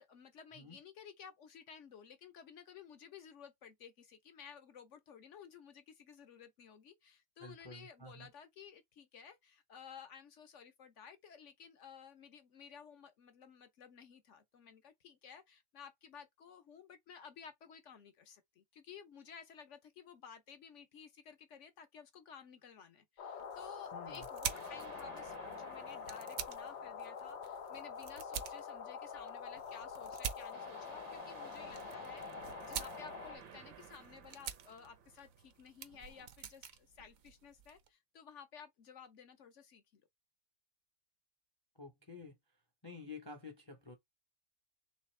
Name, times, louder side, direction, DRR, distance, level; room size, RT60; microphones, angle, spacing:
voice 1, 0.0-40.0, left 7 dB, 60° left, 0.8 m, -55 dB
voice 2, 7.4-8.3 23.9-24.3 41.8-42.3 42.8-43.9, left 3 dB, 25° left, 0.6 m, -50 dB
sound 1, 23.2-33.4, left 6 dB, 85° left, 0.6 m, -46 dB
sound 2, 23.3-37.9, right 8 dB, 65° right, 0.9 m, -48 dB
sound 3, 24.5-27.6 30.5-35.7, right 7 dB, 85° right, 1.7 m, -56 dB
4.1 x 3.4 x 3.2 m
omnidirectional pair, 2.0 m